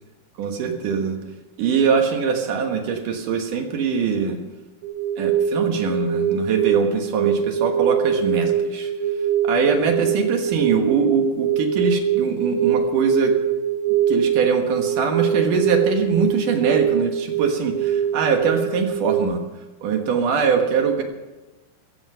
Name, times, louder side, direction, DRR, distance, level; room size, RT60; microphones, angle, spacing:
voice 1, 0.4-1.2 1.6-4.4 5.2-8.9 9.4-13.3 14.1-19.4 19.8-21.0, right 6 dB, 60° right, 4 dB, 2.4 m, -22 dB
sound 1, 4.8-19.2, right 8 dB, 80° right, 3.8 m, -23 dB
15.5 x 14.0 x 5.6 m, 1.1 s
omnidirectional pair, 5.1 m